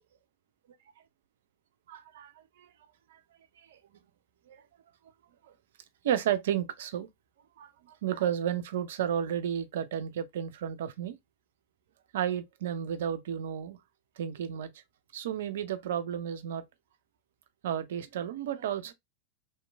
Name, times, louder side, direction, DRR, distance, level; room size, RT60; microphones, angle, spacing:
voice 1, 1.9-2.7 3.1-3.2 3.7-3.8 4.5-4.6 6.0-7.1 7.6-11.2 12.1-13.8 14.2-14.7 15.1-16.6 17.6-18.9, right 9 dB, 60° right, 0.4 m, -32 dB
2.9 x 2.8 x 2.3 m
figure-of-eight pair, 90°, 0 cm